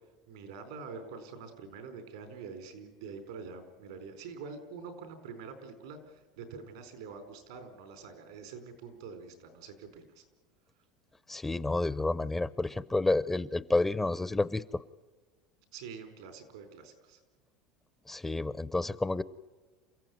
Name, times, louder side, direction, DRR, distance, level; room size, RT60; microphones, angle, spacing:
voice 1, 0.3-10.2 15.7-17.2, right 5 dB, 90° right, 8 dB, 4.4 m, -46 dB
voice 2, 11.3-14.6 18.1-19.2, left 2 dB, 10° left, 17 dB, 0.6 m, -30 dB
28.0 x 15.0 x 9.5 m, 1.3 s
supercardioid pair, 115°, 3 cm